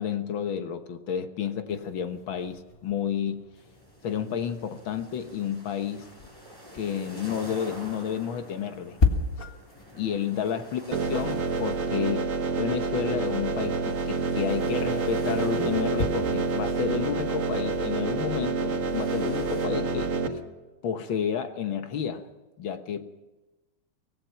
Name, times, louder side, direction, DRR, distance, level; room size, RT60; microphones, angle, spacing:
voice 1, 0.0-3.4 4.0-6.1 6.7-9.0 9.9-12.3 12.6-20.1 20.8-22.2 22.6-23.2, left 8 dB, 70° left, 8 dB, 2.0 m, -31 dB
sound 1, 1.7-18.5, left 4 dB, 30° left, 1.6 m, -36 dB
sound 2, 3.5-19.7, equal, 10° left, 6.8 m, -48 dB
sound 3, 10.9-20.3, right 4 dB, 75° right, 2.3 m, -28 dB
24.5 x 18.0 x 5.8 m, 1.1 s
omnidirectional pair, 2.3 m